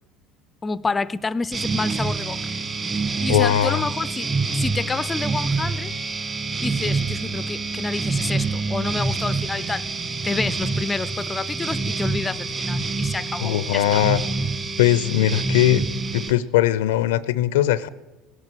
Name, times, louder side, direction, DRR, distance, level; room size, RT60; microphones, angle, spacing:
voice 1, 0.6-2.4 2.9-5.9 6.6-9.9 10.2-14.0, left 4 dB, 20° left, 0.5 m, -29 dB
sound 1, 1.5-16.3, right 3 dB, 30° right, 1.8 m, -26 dB
voice 2, 3.3-3.9 13.4-14.2 14.8-15.8 16.1-17.9, left 12 dB, 85° left, 0.6 m, -20 dB
17.5 x 9.6 x 7.6 m
supercardioid pair, 90°, 0 cm